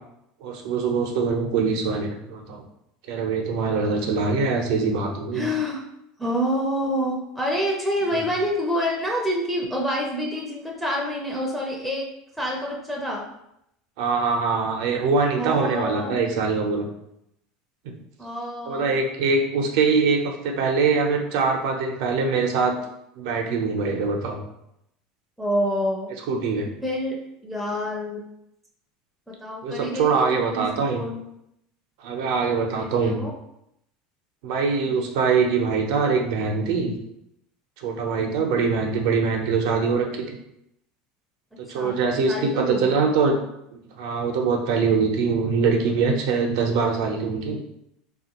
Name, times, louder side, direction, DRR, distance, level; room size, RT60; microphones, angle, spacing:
voice 1, 0.4-2.6 3.1-5.5 14.0-16.9 18.7-22.7 23.2-24.4 26.3-26.7 29.6-31.0 32.0-33.2 34.4-36.9 37.8-40.4 41.6-43.3 43.7-47.6, right 4 dB, 75° right, 2 dB, 0.6 m, -23 dB
voice 2, 5.3-5.8 6.2-12.1 12.4-13.2 15.4-16.2 18.2-18.9 25.4-26.1 26.8-28.2 29.3-31.2 32.5-33.3 34.9-35.0 38.2-38.4 41.7-42.0 42.3-43.1, equal, ahead, -3 dB, 0.4 m, -27 dB
3.2 x 2.4 x 2.9 m, 0.80 s
supercardioid pair, 135°, 3 cm